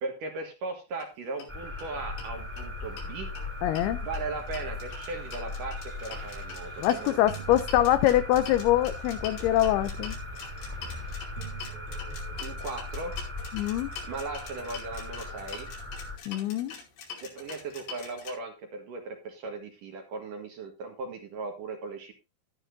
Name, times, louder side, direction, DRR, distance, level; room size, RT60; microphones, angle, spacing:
voice 1, 0.0-3.3 4.0-7.2 12.4-13.1 14.1-15.7 17.2-22.1, right 3 dB, 60° right, 2.6 m, -37 dB
sound 1, 0.9-1.1 1.4-1.5 1.8-1.9 2.2-3.1 3.3-18.3, left 6 dB, 70° left, 4.8 m, -44 dB
sound 2, 1.5-16.2, left 2 dB, 5° right, 2.4 m, -38 dB
voice 2, 3.6-4.0 6.8-10.2 13.5-13.9 16.3-16.7, left 13 dB, 90° left, 2.2 m, -24 dB
sound 3, 4.0-8.6 9.3-12.6 13.4-13.5, right 5 dB, 45° right, 2.5 m, -47 dB
12.5 x 11.5 x 2.7 m
omnidirectional pair, 5.3 m